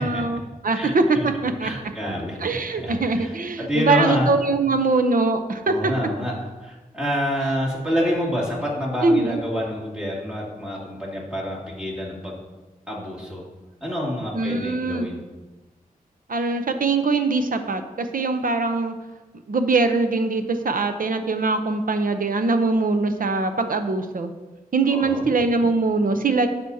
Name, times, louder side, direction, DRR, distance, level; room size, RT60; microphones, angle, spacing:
voice 1, 0.0-1.7 2.4-5.7 9.0-9.4 14.3-15.1 16.3-18.9 19.5-24.3 24.7-26.5, right 3 dB, 65° right, 8 dB, 0.7 m, -22 dB
voice 2, 0.7-1.3 1.6-3.3 3.7-4.3 5.6-12.4 12.9-13.4 13.8-15.2 24.9-25.3, equal, 5° right, -6 dB, 2.6 m, -27 dB
11.0 x 6.1 x 2.8 m, 1.2 s
wide cardioid pair, 70°, 15 cm